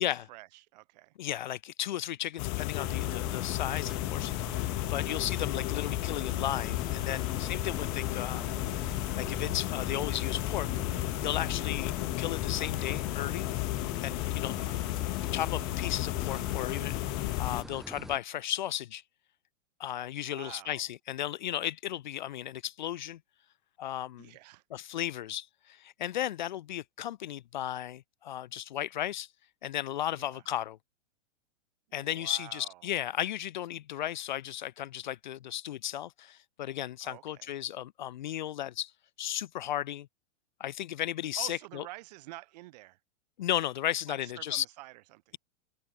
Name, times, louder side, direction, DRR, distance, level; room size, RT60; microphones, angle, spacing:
voice 1, 0.0-1.1 14.5-14.9 20.1-20.9 24.2-24.6 24.9-25.0 30.1-30.4 31.9-32.8 37.0-37.5 41.3-43.0 44.1-45.4, right 20 dB, 35° right, 7.1 m, -48 dB
voice 2, 1.2-8.4 8.8-10.7 11.2-13.5 14.0-14.6 15.3-19.0 19.8-23.2 23.8-24.3 24.7-29.3 29.6-30.8 31.9-38.9 39.2-40.1 40.6-41.8 43.4-44.6, left 12 dB, 40° left, 0.7 m, -35 dB
sound 1, 2.4-17.6, left 40 dB or more, 25° left, 2.3 m, -33 dB
sound 2, 2.8-18.2, right 1 dB, ahead, 3.7 m, -43 dB
supercardioid pair, 180°, 37 cm